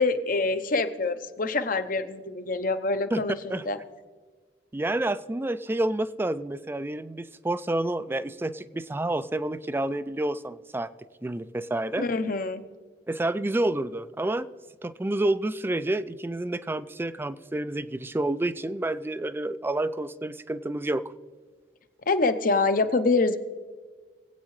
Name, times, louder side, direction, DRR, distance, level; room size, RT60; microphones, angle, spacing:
voice 1, 0.0-3.8 12.0-12.6 22.1-23.4, left 3 dB, 50° left, 10 dB, 0.7 m, -25 dB
voice 2, 4.7-10.9 11.2-12.1 13.1-14.5 14.8-21.0, right 1 dB, 15° right, 14 dB, 0.3 m, -29 dB
23.0 x 8.6 x 3.2 m, 1.4 s
head